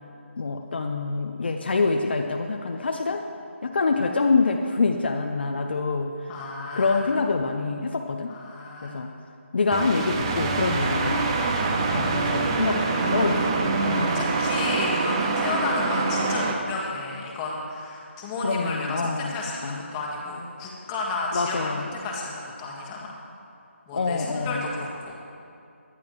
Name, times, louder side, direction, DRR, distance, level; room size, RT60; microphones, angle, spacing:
voice 1, 0.4-3.2 3.6-6.1 6.7-8.3 8.8-9.1 9.5-11.4 11.9-14.3 18.4-19.3 19.6-19.8 21.3-21.9 23.9-24.7, left 4 dB, 50° left, 4 dB, 0.7 m, -26 dB
voice 2, 6.3-7.1 8.3-8.9 13.8-23.2 23.9-25.2, left 3 dB, 15° left, -4 dB, 1.6 m, -32 dB
sound 1, 9.7-16.5, right 3 dB, 20° right, 0.8 m, -25 dB
18.0 x 11.5 x 3.1 m, 2.6 s
figure-of-eight pair, 160°, 7 cm